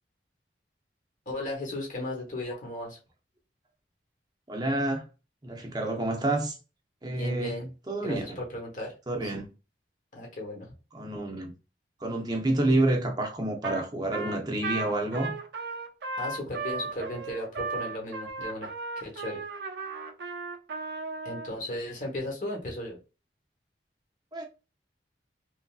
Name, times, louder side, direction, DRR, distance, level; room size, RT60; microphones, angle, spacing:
voice 1, 1.3-3.0 7.1-7.7 8.0-8.9 9.2-9.3 10.1-10.7 16.2-18.7 19.0-19.4 21.2-23.0, left 1 dB, 45° left, 1.0 m, -36 dB
voice 2, 4.5-5.1 5.4-6.6 7.0-8.2 9.1-9.5 10.9-11.5 12.0-15.4 24.3-24.4, right 1 dB, 25° right, 0.6 m, -28 dB
Trumpet, 13.6-13.9 14.1-21.5, right 3 dB, 65° right, 0.5 m, -35 dB
3.2 x 2.5 x 2.3 m
head